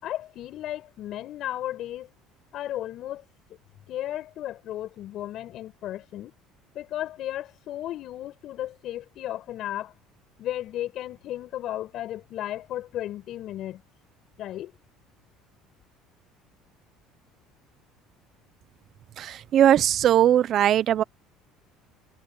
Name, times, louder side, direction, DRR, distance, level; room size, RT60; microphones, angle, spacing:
voice 1, 0.0-2.1 2.5-3.2 3.9-6.3 6.7-9.9 10.4-13.8 14.4-14.7, left 13 dB, 60° left, 5.5 m, -34 dB
voice 2, 19.2-21.0, right 11 dB, 50° right, 0.8 m, -20 dB
supercardioid pair, 95°, 0 cm